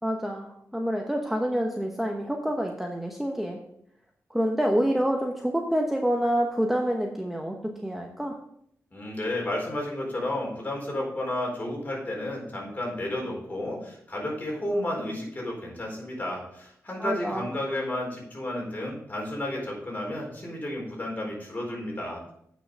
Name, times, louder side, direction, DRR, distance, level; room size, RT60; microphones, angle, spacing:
voice 1, 0.0-3.6 4.3-8.4 17.0-17.5, equal, 5° right, 2 dB, 1.0 m, -27 dB
voice 2, 8.9-22.3, left 1 dB, 30° left, -2 dB, 4.3 m, -32 dB
9.0 x 6.1 x 5.4 m, 0.72 s
cardioid pair, 85°, 6 cm